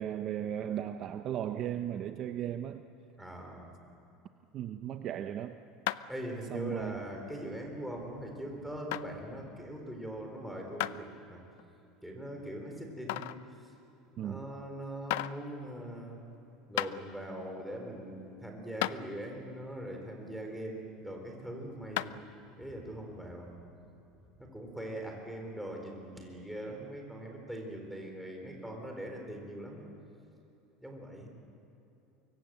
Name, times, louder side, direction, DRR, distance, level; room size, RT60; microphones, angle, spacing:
voice 1, 0.0-2.9 4.5-5.6 6.5-7.0 14.2-14.5, right 10 dB, 40° right, 8 dB, 0.8 m, -36 dB
voice 2, 3.2-3.7 6.1-11.4 12.0-13.3 14.2-16.2 16.7-22.2 22.6-23.5 24.4-29.8 30.8-31.3, right 1 dB, ahead, 1 dB, 4.2 m, -41 dB
sound 1, 5.9-6.2 6.8-6.9 7.6-7.7 8.9-9.1 10.8-11.0 11.6-11.7 13.1-13.4 14.5-14.6 15.1-15.4 16.3-16.4 16.8-16.9 18.3-18.4 18.8-19.0 22.0-22.2, left 17 dB, 75° left, 0.6 m, -33 dB
25.0 x 24.0 x 7.8 m, 3.0 s
cardioid pair, 155°, 0 cm